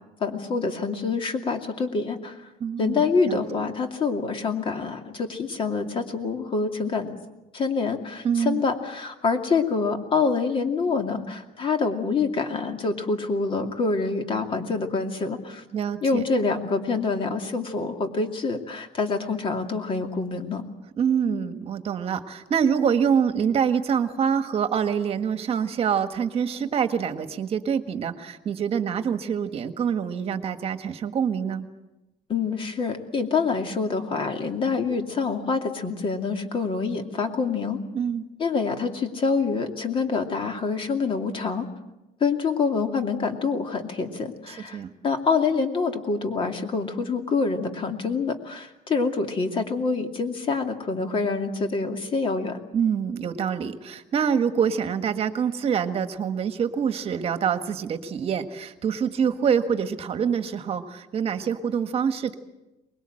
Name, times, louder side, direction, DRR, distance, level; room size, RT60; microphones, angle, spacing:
voice 1, 0.2-2.5 2.8-7.2 7.5-15.6 16.0-20.6 32.3-37.8 38.4-41.7 42.2-52.6, left 4 dB, 35° left, 5 dB, 2.6 m, -26 dB
voice 2, 2.6-3.7 8.2-8.6 15.7-16.2 21.0-31.7 37.9-38.3 44.5-44.9 52.7-62.4, right 7 dB, 40° right, 9 dB, 1.6 m, -26 dB
23.5 x 21.0 x 7.8 m, 1.0 s
cardioid pair, 140°, 16 cm